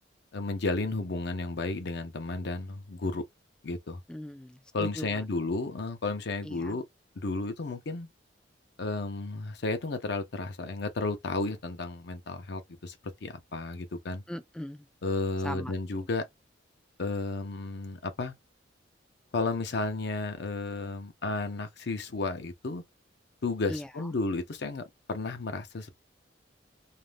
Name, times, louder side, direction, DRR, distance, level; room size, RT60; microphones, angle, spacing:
voice 1, 0.3-3.2 3.6-4.0 4.7-6.8 7.2-8.1 8.8-13.0 13.2-14.2 15.0-16.3 17.0-18.3 19.3-22.8 23.4-25.9, left 3 dB, 65° left, 0.6 m, -33 dB
voice 2, 4.1-5.2 6.4-6.8 14.3-14.9 15.4-15.7 16.0-16.1 23.7-23.9, left 1 dB, 5° left, 0.3 m, -39 dB
2.5 x 2.1 x 3.2 m
head